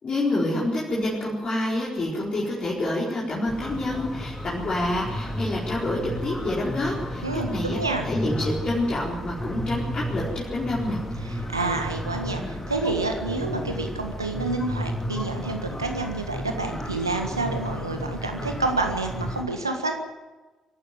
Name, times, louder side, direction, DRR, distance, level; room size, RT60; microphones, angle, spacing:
voice 1, 0.0-7.8 8.0-11.0, left 1 dB, 40° left, -5 dB, 4.4 m, -27 dB
sound 1, 3.5-19.4, equal, 15° left, 3.0 m, -33 dB
voice 2, 7.2-8.1 11.2-20.0, right 3 dB, 90° right, 4 dB, 1.6 m, -28 dB
24.0 x 12.0 x 9.2 m, 1.3 s
figure-of-eight pair, 45°, 2 cm